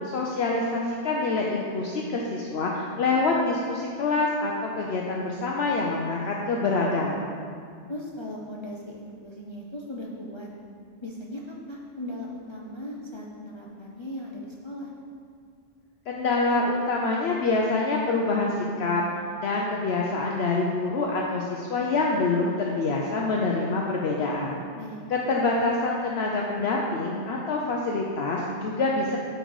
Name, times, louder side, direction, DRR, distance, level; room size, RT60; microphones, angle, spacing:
voice 1, 0.0-7.3 16.1-19.0 19.4-24.5 25.1-29.2, left 3 dB, 65° left, -2 dB, 0.8 m, -26 dB
voice 2, 7.9-10.5 11.0-14.9 24.8-25.1, left 1 dB, 40° left, -3 dB, 0.4 m, -38 dB
7.9 x 3.9 x 4.7 m, 2.2 s
omnidirectional pair, 1.2 m